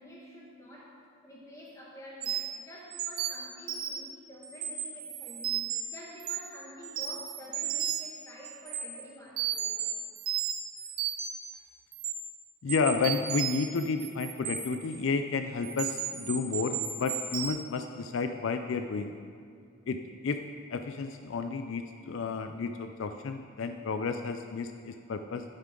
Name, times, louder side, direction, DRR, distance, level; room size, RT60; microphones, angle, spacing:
voice 1, 0.0-9.8, equal, 15° left, -4 dB, 1.7 m, -49 dB
sound 1, 2.2-2.6 2.9-4.1 4.4-5.8 6.2-6.5 6.8-8.1 8.4-8.8 9.4-11.4 11.9-12.1 12.7-14.9 15.6-17.5, right 10 dB, 85° right, 1.2 m, -33 dB
voice 2, 12.6-19.2 19.9-20.4 20.7-25.4, left 4 dB, 70° left, 7 dB, 0.4 m, -31 dB
11.0 x 9.2 x 3.8 m, 2.2 s
head